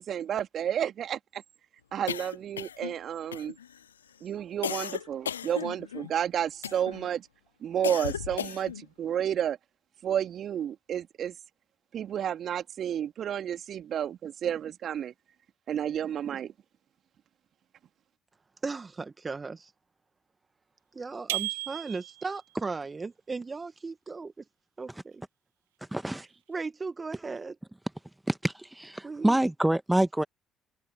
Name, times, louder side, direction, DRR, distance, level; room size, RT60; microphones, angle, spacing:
voice 1, 0.0-1.4 1.9-3.5 4.2-7.3 7.6-9.6 10.0-11.3 11.9-15.1 15.7-16.5, right 9 dB, 50° right, 2.3 m, -31 dB
sound 1, 2.1-3.0 3.3-3.8 4.6-6.1 6.6-7.1 7.8-8.8, left 8 dB, 85° left, 0.4 m, -35 dB
voice 2, 18.6-19.7 20.9-24.3 24.8-25.2 26.1-26.2 26.5-27.6 29.0-29.4, right 4 dB, 25° right, 1.8 m, -36 dB
sound 2, 21.3-22.4, right 18 dB, 80° right, 2.2 m, -34 dB
voice 3, 25.9-26.3 28.3-30.2, right 1 dB, 10° right, 1.6 m, -26 dB
figure-of-eight pair, 50°, 0 cm